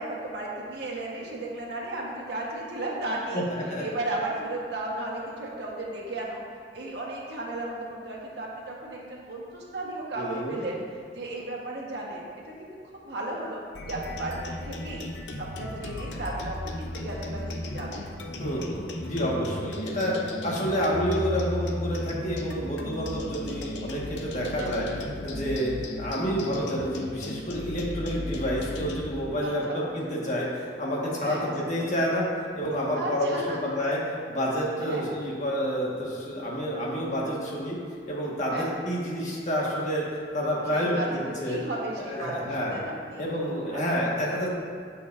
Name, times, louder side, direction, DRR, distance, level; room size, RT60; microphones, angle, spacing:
voice 1, 0.0-3.5 3.8-6.4 6.7-10.8 11.1-15.1 15.4-18.0 20.6-21.0 24.4-25.0 29.4-29.8 31.2-31.4 32.9-33.6 34.8-35.0 38.5-38.7 40.7-41.2 41.5-43.2 43.5-43.9, right 2 dB, 65° right, -4 dB, 1.4 m, -35 dB
voice 2, 10.1-10.6 18.4-24.9 25.2-25.7 26.0-32.3 32.6-34.0 34.3-37.8 38.1-40.0 40.3-41.6 42.0-42.8 43.2-44.5, equal, 40° left, -4 dB, 1.7 m, -29 dB
sound 1, 13.7-29.1, left 1 dB, 80° left, 0.7 m, -35 dB
14.5 x 5.8 x 2.6 m, 2.1 s
head